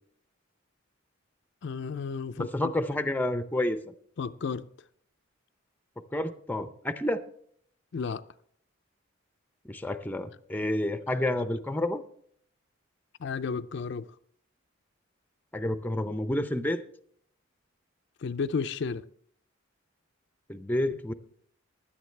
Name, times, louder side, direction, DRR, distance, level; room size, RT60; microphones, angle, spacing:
voice 1, 1.6-2.7 4.2-4.6 7.9-8.2 13.2-14.1 18.2-19.0, left 5 dB, 55° left, 0.4 m, -32 dB
voice 2, 2.4-3.8 6.1-7.2 9.6-12.0 15.5-16.8 20.5-21.1, left 1 dB, 10° left, 0.5 m, -29 dB
16.0 x 11.0 x 3.3 m
head